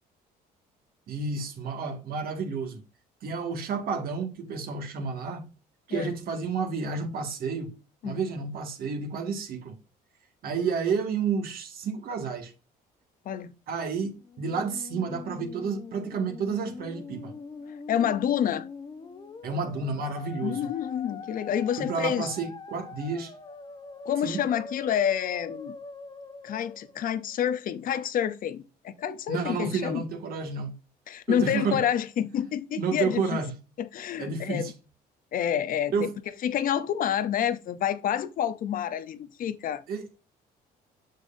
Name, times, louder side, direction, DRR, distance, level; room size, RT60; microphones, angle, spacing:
voice 1, 1.1-2.8 3.2-5.5 5.9-7.7 8.0-9.7 10.4-12.5 13.7-17.3 19.4-20.6 21.8-23.3 24.2-24.4 29.3-30.8 31.3-31.8 32.8-33.5 34.2-34.7 35.9-36.1 39.9-40.2, right 5 dB, 65° right, 2.0 m, -30 dB
Musical instrument, 14.2-27.5, left 4 dB, 25° left, 0.9 m, -43 dB
voice 2, 17.9-18.7 20.4-22.3 24.0-25.8 26.4-30.0 31.1-33.4 33.8-34.7 35.3-36.1 36.4-39.8, left 9 dB, 55° left, 0.7 m, -28 dB
6.9 x 6.4 x 2.7 m
cardioid pair, 110°, 17 cm